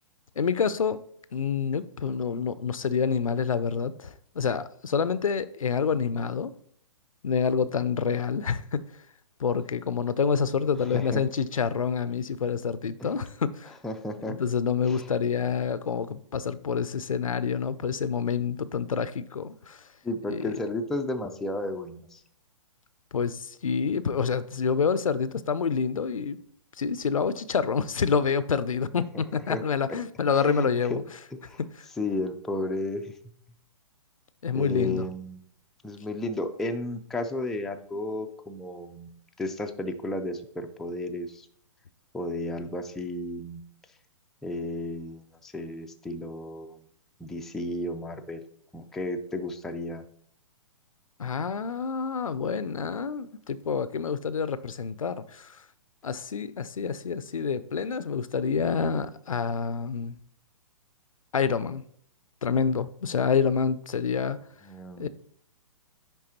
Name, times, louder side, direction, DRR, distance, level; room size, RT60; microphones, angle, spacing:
voice 1, 0.4-1.0 1.3-6.5 7.2-8.8 9.4-13.7 14.3-19.8 20.3-20.6 23.1-26.4 26.8-31.0 31.6-31.7 34.4-35.1 51.2-55.6 56.0-60.2 61.3-61.8 62.4-64.4 65.0-65.1, left 6 dB, 90° left, 0.4 m, -27 dB
voice 2, 10.9-11.2 13.0-13.1 13.8-14.4 14.9-15.1 20.0-22.2 29.5-29.6 30.3-31.0 31.3-31.6 32.0-33.1 34.5-35.4 35.8-39.1 39.4-41.5 42.1-43.6 44.4-46.9 47.2-48.4 48.7-50.0 64.6-65.1, left 1 dB, ahead, 0.3 m, -33 dB
9.9 x 3.5 x 2.8 m
hypercardioid pair, 125°, 17 cm